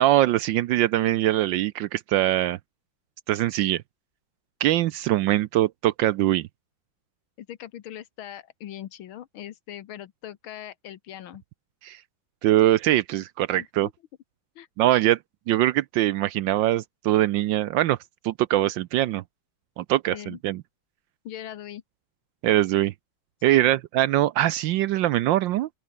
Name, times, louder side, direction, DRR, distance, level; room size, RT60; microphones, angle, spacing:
voice 1, 0.0-2.6 3.3-3.8 4.6-6.5 11.8-12.0 12.4-13.9 14.8-15.2 15.5-18.0 18.2-19.2 19.8-20.6 22.4-22.9 23.4-25.7, right 14 dB, 75° right, 1.2 m, -22 dB
voice 2, 7.4-11.4 13.6-13.9 14.6-14.7 20.1-20.4 21.3-21.8 23.5-23.7, left 11 dB, 80° left, 1.9 m, -40 dB
open air
omnidirectional pair, 2.2 m